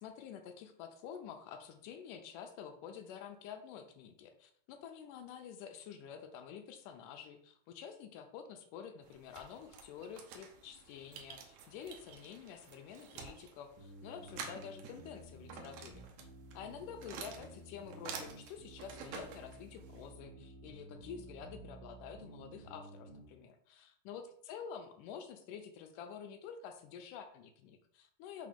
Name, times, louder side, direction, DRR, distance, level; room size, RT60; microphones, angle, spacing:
voice 1, 0.0-16.1 16.5-28.5, left 7 dB, 80° left, 7 dB, 2.1 m, -49 dB
sound 1, 9.0-20.1, right 6 dB, 75° right, 1.8 m, -50 dB
sound 2, 13.8-23.3, right 1 dB, 45° right, 2.4 m, -53 dB
5.3 x 3.9 x 5.1 m, 0.64 s
omnidirectional pair, 4.0 m